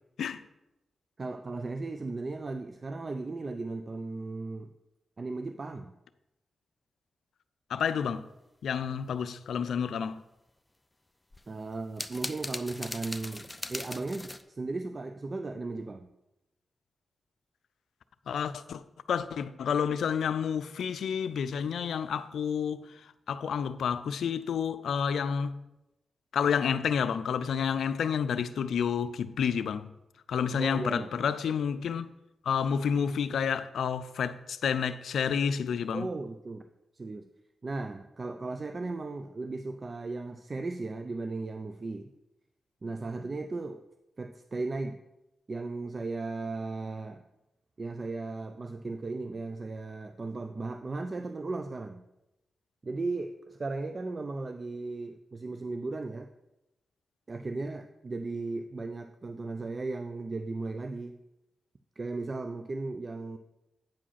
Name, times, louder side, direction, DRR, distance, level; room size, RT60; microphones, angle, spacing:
voice 1, 1.2-4.7 5.2-5.9 11.5-16.1 30.5-31.1 35.9-36.6 36.9-37.3 37.6-42.1 42.8-43.8 44.2-45.0 45.5-47.2 47.8-52.0 52.8-56.3 57.3-61.2 62.0-63.4, right 3 dB, 40° right, 0.5 m, -36 dB
voice 2, 7.7-8.2 8.6-10.2 18.3-18.8 19.1-22.9 23.3-25.6 26.3-29.9 30.3-32.1 32.4-36.1, left 7 dB, 85° left, 0.4 m, -29 dB
sound 1, 11.3-14.4, left 1 dB, 15° left, 0.6 m, -39 dB
8.8 x 5.0 x 5.7 m
cardioid pair, 60°, 0 cm